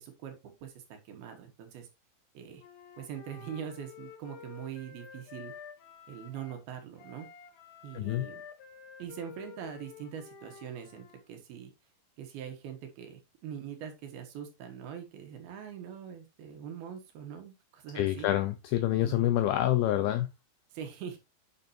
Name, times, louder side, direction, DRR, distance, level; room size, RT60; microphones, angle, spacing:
voice 1, 0.0-1.9 2.3-2.6 3.0-5.5 6.1-7.3 7.8-8.4 9.0-11.7 12.2-18.3 19.0-19.3 20.7-21.2, right 8 dB, 70° right, 2.8 m, -43 dB
Wind instrument woodwind instrument, 2.6-6.6 7.0-11.2, left 6 dB, 65° left, 2.7 m, -50 dB
voice 2, 7.9-8.3 18.0-20.3, left 13 dB, 85° left, 2.2 m, -27 dB
8.5 x 6.5 x 2.6 m
omnidirectional pair, 5.1 m